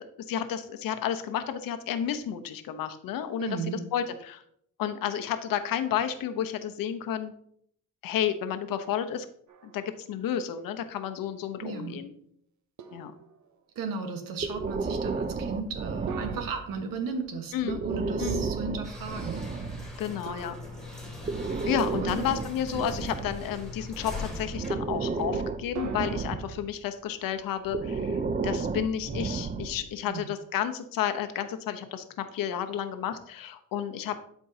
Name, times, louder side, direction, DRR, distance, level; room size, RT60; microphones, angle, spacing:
voice 1, 0.0-3.5 3.9-4.4 4.8-7.3 8.0-9.3 9.6-12.1 12.9-13.1 17.5-17.8 18.2-18.4 20.0-20.5 21.7-34.2, left 9 dB, 80° left, 8 dB, 0.9 m, -31 dB
voice 2, 3.4-3.9 11.6-12.0 13.7-19.5 22.0-22.2 30.1-30.3, right 4 dB, 85° right, 5 dB, 1.3 m, -35 dB
sound 1, 9.5-10.4 10.8-10.9 12.8-13.7 16.1-17.6 20.3-21.6 25.7-26.3, right 4 dB, 60° right, 0.8 m, -44 dB
Breathing, 14.4-16.8 17.6-19.9 21.0-23.9 24.5-26.7 27.6-29.9, right 4 dB, 25° right, 0.5 m, -32 dB
sound 2, 18.8-25.8, left 3 dB, ahead, 2.1 m, -41 dB
12.0 x 4.5 x 2.7 m, 0.67 s
cardioid pair, 100°, 33 cm